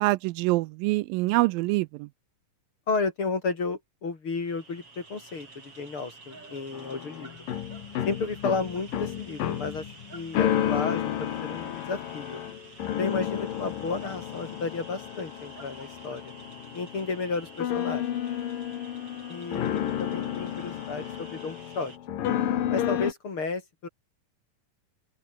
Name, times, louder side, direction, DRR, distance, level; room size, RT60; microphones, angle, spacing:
voice 1, 0.0-2.1, right 20 dB, 80° right, 2.3 m, -25 dB
voice 2, 2.9-7.3 8.1-12.4 13.0-16.3 16.7-18.1 19.3-21.9 22.7-23.9, left 4 dB, 35° left, 3.9 m, -32 dB
sound 1, 4.3-22.0, right 3 dB, 40° right, 7.3 m, -49 dB
sound 2, 6.7-23.1, left 11 dB, 70° left, 3.3 m, -31 dB
open air
omnidirectional pair, 4.2 m